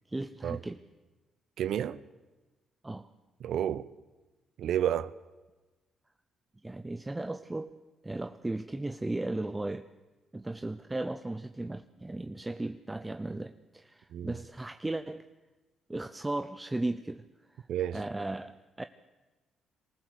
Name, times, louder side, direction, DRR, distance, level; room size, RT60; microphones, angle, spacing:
voice 1, 0.1-0.8 2.8-3.1 6.6-7.7 8.0-9.9 10.3-15.2 15.9-17.2 17.5-17.7 17.9-18.8, right 2 dB, 15° right, 0.7 m, -36 dB
voice 2, 1.6-2.0 3.4-3.9 4.6-5.1 14.1-14.3 17.7-18.0, right 10 dB, 70° right, 0.8 m, -30 dB
23.0 x 15.5 x 8.1 m
cardioid pair, 90°, 0 cm